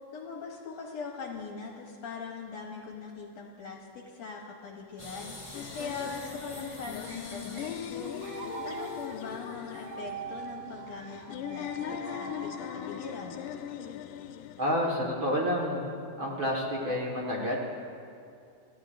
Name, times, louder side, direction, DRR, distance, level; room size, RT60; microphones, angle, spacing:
voice 1, 0.1-13.5, left 4 dB, 65° left, 0 dB, 2.0 m, -41 dB
sound 1, 5.0-10.1, left 2 dB, 10° left, 1.6 m, -47 dB
sound 2, 5.5-14.7, left 10 dB, 80° left, 2.0 m, -40 dB
sound 3, 6.5-14.1, right 7 dB, 60° right, 1.6 m, -44 dB
voice 2, 14.6-15.8 16.2-17.6, equal, 45° right, -3 dB, 1.9 m, -29 dB
28.0 x 14.5 x 2.6 m, 2.4 s
omnidirectional pair, 3.9 m